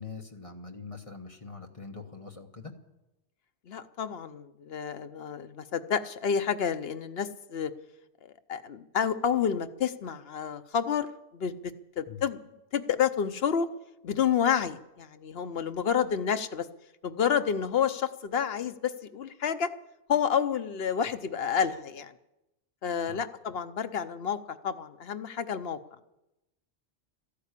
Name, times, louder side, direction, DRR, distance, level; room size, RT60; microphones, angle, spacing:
voice 1, 0.0-2.7 12.1-12.2 23.1-23.2, left 4 dB, 30° left, 4 dB, 1.2 m, -43 dB
voice 2, 3.7-7.7 8.5-12.4 12.7-13.7 14.0-16.7 17.0-19.7 20.1-22.1 22.8-25.8, left 7 dB, 65° left, 10 dB, 0.9 m, -29 dB
14.0 x 11.5 x 8.3 m, 0.94 s
omnidirectional pair, 1.1 m